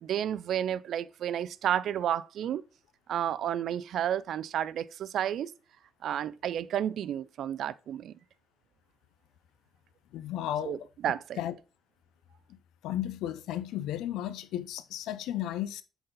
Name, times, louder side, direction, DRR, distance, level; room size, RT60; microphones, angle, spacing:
voice 1, 0.0-2.6 3.1-5.5 6.0-8.1 10.6-10.8 11.0-11.4, right 10 dB, 70° right, 0.4 m, -31 dB
voice 2, 10.1-10.8 11.4-11.5 12.5-12.6 12.8-15.8, left 12 dB, 90° left, 0.6 m, -34 dB
7.8 x 4.1 x 3.8 m
cardioid pair, 90°, 0 cm